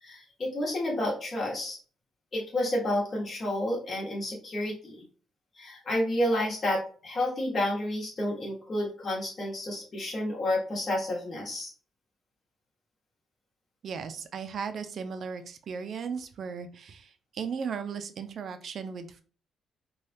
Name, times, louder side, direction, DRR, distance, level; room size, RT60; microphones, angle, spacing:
voice 1, 0.0-1.8 2.3-5.0 5.5-11.7, left 1 dB, 40° left, -4 dB, 1.2 m, -30 dB
voice 2, 13.8-19.2, right 6 dB, 55° right, 9 dB, 0.4 m, -36 dB
3.3 x 2.3 x 2.6 m, 0.40 s
cardioid pair, 90°, 0 cm